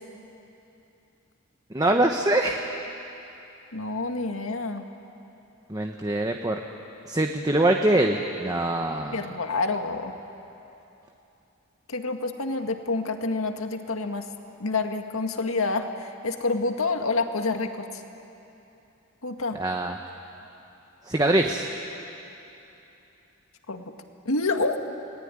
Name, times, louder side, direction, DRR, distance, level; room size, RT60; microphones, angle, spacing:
voice 1, 1.7-2.6 5.7-6.6 7.1-9.3 19.5-20.0 21.0-21.7, right 1 dB, 20° right, 3 dB, 1.1 m, -23 dB
voice 2, 3.7-4.8 9.1-10.1 11.9-14.3 14.6-17.9 19.2-19.6 23.7-23.9 24.3-24.8, left 3 dB, 85° left, 5 dB, 1.9 m, -28 dB
29.5 x 20.0 x 9.9 m, 2.9 s
head